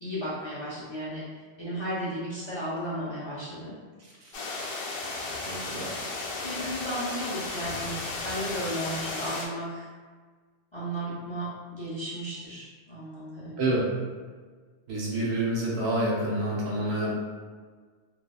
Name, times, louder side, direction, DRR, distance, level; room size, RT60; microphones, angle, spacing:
voice 1, 0.0-3.8 6.4-8.0 8.2-9.8 10.7-13.7, equal, 35° left, -9 dB, 0.5 m, -34 dB
sound 1, 4.3-9.5, left 3 dB, 70° left, 0.8 m, -34 dB
voice 2, 5.4-6.0 13.6-13.9 14.9-17.1, right 1 dB, 75° right, -5 dB, 1.0 m, -28 dB
2.8 x 2.2 x 2.3 m, 1.5 s
omnidirectional pair, 1.1 m